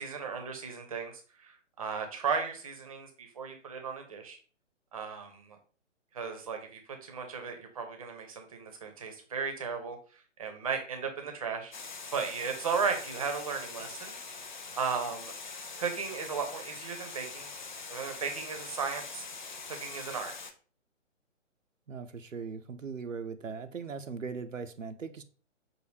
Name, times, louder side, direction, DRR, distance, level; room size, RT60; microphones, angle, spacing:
voice 1, 0.0-4.4 4.9-5.6 6.1-11.7 12.1-14.2 14.7-15.3 15.8-17.5 17.9-19.3 19.7-20.3, right 5 dB, 30° right, 0.6 m, -35 dB
Water, 11.7-20.5, left 4 dB, 40° left, 0.4 m, -43 dB
voice 2, 21.9-25.2, right 5 dB, 85° right, 0.6 m, -39 dB
5.5 x 2.6 x 3.1 m
figure-of-eight pair, 135°, 38 cm